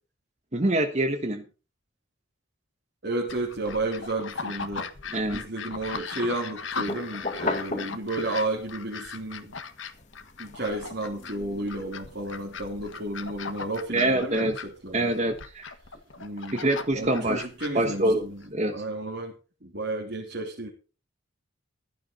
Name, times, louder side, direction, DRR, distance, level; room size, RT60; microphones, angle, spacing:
voice 1, 0.5-1.4 5.1-5.4 13.9-14.6 14.9-15.7 16.5-17.4 17.7-18.3 18.5-18.7, right 1 dB, 35° right, 6 dB, 1.2 m, -25 dB
voice 2, 3.0-4.9 5.3-9.6 10.4-15.1 16.2-16.6 16.9-18.4 18.7-19.3 19.6-20.7, right 2 dB, 55° right, -2 dB, 3.5 m, -32 dB
sound 1, 3.3-18.5, left 5 dB, 70° left, 1.5 m, -39 dB
sound 2, 6.8-8.7 9.2-13.8, left 3 dB, 35° left, 1.6 m, -37 dB
15.5 x 12.0 x 4.1 m, 0.35 s
head